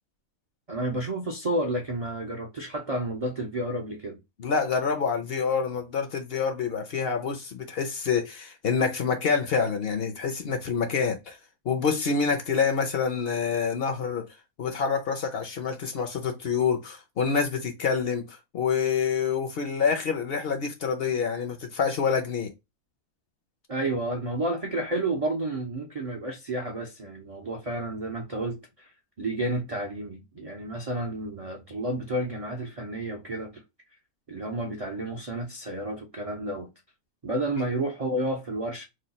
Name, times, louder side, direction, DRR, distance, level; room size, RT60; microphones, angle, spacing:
voice 1, 0.7-4.2 23.7-28.9 29.2-33.6 34.3-36.7 37.2-38.8, right 1 dB, 50° right, 0.4 m, -31 dB
voice 2, 4.4-11.4 11.6-14.3 14.6-22.5, left 5 dB, 55° left, 0.7 m, -27 dB
3.1 x 2.3 x 4.0 m
omnidirectional pair, 1.5 m